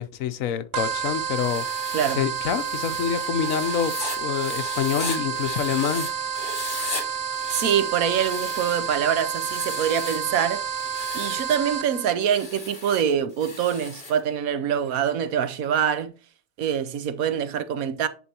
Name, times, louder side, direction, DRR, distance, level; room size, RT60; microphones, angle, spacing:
voice 1, 0.0-1.6 2.2-6.1, left 8 dB, 75° left, 1.1 m, -26 dB
sound 1, 0.7-12.1, right 6 dB, 60° right, 0.7 m, -30 dB
Writing, 1.4-6.1 6.3-7.0 7.3-8.9 9.3-10.3 10.8-11.5 12.2-14.2, left 2 dB, 35° left, 1.9 m, -37 dB
voice 2, 1.9-2.3 7.5-10.6 11.1-16.1 16.6-18.1, right 8 dB, 85° right, 1.2 m, -25 dB
10.5 x 4.5 x 2.8 m
omnidirectional pair, 1.5 m